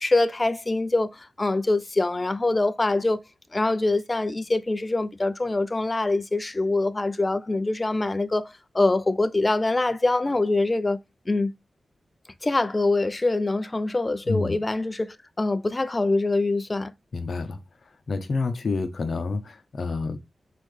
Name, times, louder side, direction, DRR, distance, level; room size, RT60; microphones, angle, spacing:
voice 1, 0.0-3.2 3.5-11.0 11.3-11.5 12.4-16.9, left 2 dB, 25° left, 0.4 m, -24 dB
voice 2, 17.1-17.6 18.1-20.2, left 3 dB, 60° left, 0.8 m, -28 dB
4.1 x 3.7 x 3.3 m
wide cardioid pair, 105°, 0 cm